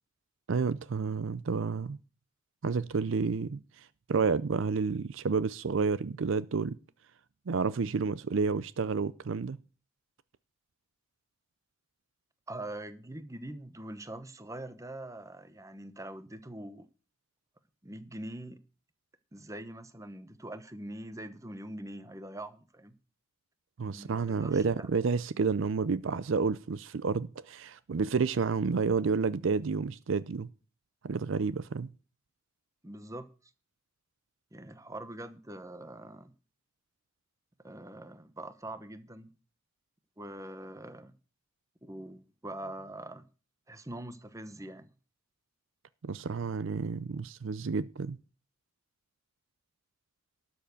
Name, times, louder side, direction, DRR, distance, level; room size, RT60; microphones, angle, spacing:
voice 1, 0.5-2.0 2.6-6.8 7.5-9.6 23.8-30.5 31.0-31.9 46.0-48.2, right 5 dB, 65° right, 0.5 m, -30 dB
voice 2, 12.5-16.9 17.8-18.6 19.3-22.9 23.9-24.9 32.8-33.3 34.5-36.3 37.6-39.3 40.2-41.1 41.8-43.3 43.7-44.9, right 1 dB, 15° right, 0.9 m, -43 dB
12.5 x 6.9 x 6.8 m
head